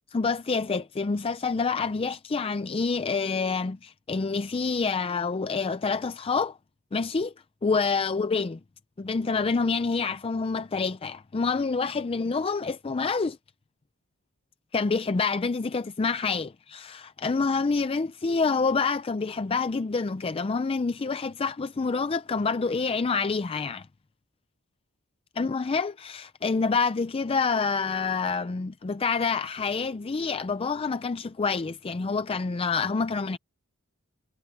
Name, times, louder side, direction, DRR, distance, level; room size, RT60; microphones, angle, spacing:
voice 1, 0.1-6.6 6.9-7.3 7.6-8.6 9.0-13.4 14.7-23.9 25.4-33.4, left 4 dB, 25° left, 0.4 m, -27 dB
head